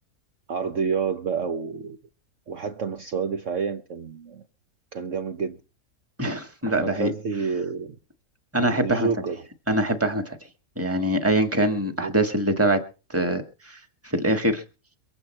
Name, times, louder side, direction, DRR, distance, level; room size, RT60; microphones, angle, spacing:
voice 1, 0.5-2.0 2.5-4.4 4.9-5.6 6.7-8.0 8.6-9.5 12.0-12.1, right 5 dB, 55° right, 1.2 m, -29 dB
voice 2, 6.2-7.1 8.5-9.1 9.7-10.4 10.8-12.8 13.1-13.8 14.0-14.6, right 1 dB, 10° right, 1.8 m, -23 dB
23.5 x 8.8 x 4.4 m
omnidirectional pair, 1.7 m